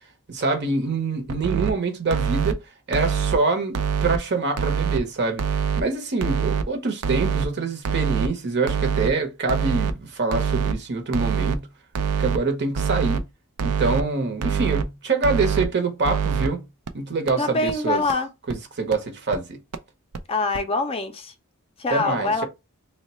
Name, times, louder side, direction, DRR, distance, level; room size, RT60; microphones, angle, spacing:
voice 1, 0.3-2.6 2.9-5.4 5.8-11.7 12.2-13.3 13.6-16.6 16.9-18.0 18.5-19.6 21.9-22.4, right 3 dB, 50° right, 0.8 m, -25 dB
sound 1, 1.3-1.7 2.1-2.5 2.9-3.3 3.7-4.2 4.6-5.0 5.4-5.8 6.2-6.6 7.0-7.5 7.9-8.3 8.7-9.1 9.5-9.9 10.3-10.7 11.1-11.6 12.0-12.4 12.8-13.2 13.6-14.0 14.4-14.8 15.2-15.7 16.0-16.5 16.9-17.0 17.3-17.4 17.7-17.8 18.1-18.2 18.5-18.6 18.9-19.0 19.3-19.4 19.7-19.8 20.1-20.2 20.5-20.6, right 7 dB, 90° right, 0.4 m, -24 dB
voice 2, 17.4-18.3 20.3-21.3 21.8-22.4, left 3 dB, 25° left, 0.4 m, -24 dB
3.1 x 2.1 x 4.2 m
head